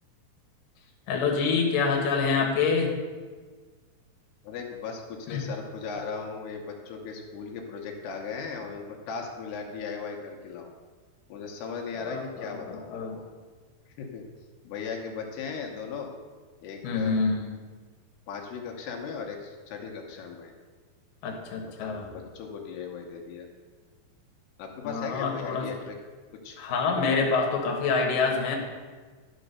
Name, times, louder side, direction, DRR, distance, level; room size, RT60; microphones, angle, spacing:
voice 1, 1.1-2.9 5.3-5.4 12.0-13.2 16.8-17.5 21.2-22.1 24.8-25.7 26.6-28.6, left 4 dB, 65° left, 1 dB, 2.8 m, -26 dB
voice 2, 4.4-10.7 11.3-13.2 14.0-14.2 14.6-16.1 16.6-17.2 18.3-20.5 21.8-23.5 24.6-26.0 26.4-26.6, left 5 dB, 85° left, 1 dB, 3.1 m, -37 dB
11.0 x 5.2 x 6.6 m, 1.5 s
omnidirectional pair, 4.6 m